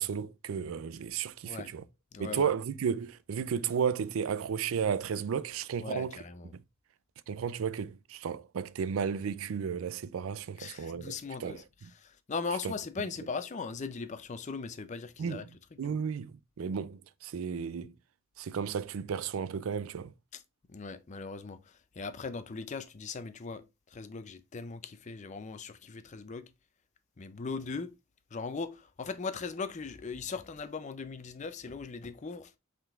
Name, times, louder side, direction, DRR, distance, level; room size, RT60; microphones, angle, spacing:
voice 1, 0.0-1.8 2.2-6.2 7.3-11.1 11.4-11.6 15.2-15.4 15.8-17.9 18.4-20.1, right 7 dB, 75° right, 0.4 m, -33 dB
voice 2, 2.1-2.5 5.8-6.5 10.6-11.6 11.9-15.5 15.9-16.0 20.3-20.4 20.7-23.6 23.9-26.5 27.2-27.9 28.3-32.5, left 4 dB, 35° left, 0.4 m, -39 dB
5.7 x 3.7 x 2.4 m
head